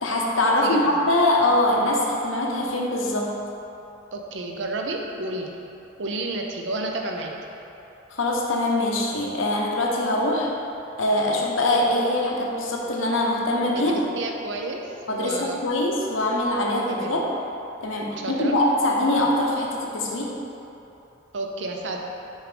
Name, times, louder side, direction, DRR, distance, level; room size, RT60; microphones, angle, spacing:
voice 1, 0.0-3.3 8.1-10.5 11.0-13.9 15.1-17.2 17.8-20.3, left 1 dB, 90° left, -2 dB, 0.9 m, -23 dB
voice 2, 0.6-1.0 4.1-5.5 6.0-7.3 13.7-15.6 16.9-17.2 18.2-18.6 21.3-22.0, right 2 dB, 65° right, 2 dB, 0.6 m, -31 dB
6.3 x 5.1 x 3.3 m, 2.9 s
head